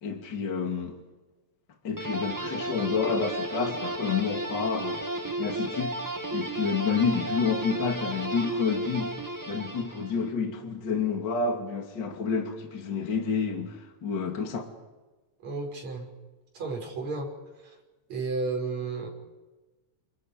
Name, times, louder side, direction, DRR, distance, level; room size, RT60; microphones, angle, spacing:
voice 1, 0.0-1.0 1.8-5.0 5.4-6.0 6.3-9.1 9.5-14.7, left 5 dB, 40° left, 2.9 m, -29 dB
sound 1, 2.0-10.3, right 1 dB, 15° right, 0.6 m, -33 dB
voice 2, 15.4-16.1 16.6-17.3 18.1-19.1, right 3 dB, 65° right, 7.0 m, -32 dB
29.5 x 28.5 x 5.3 m
omnidirectional pair, 3.4 m